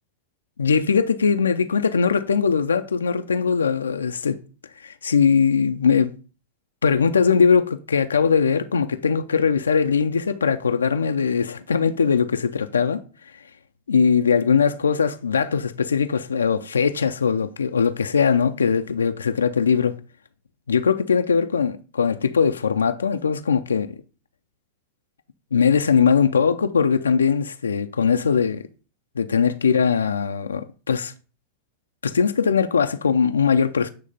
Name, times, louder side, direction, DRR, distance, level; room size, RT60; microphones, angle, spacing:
voice 1, 0.6-4.4 4.8-6.1 6.8-13.0 13.9-20.0 20.7-24.0 25.5-28.6 29.2-31.1 32.0-33.9, left 6 dB, 85° left, 0.5 m, -20 dB
8.7 x 3.2 x 5.2 m
hypercardioid pair, 95°, 0 cm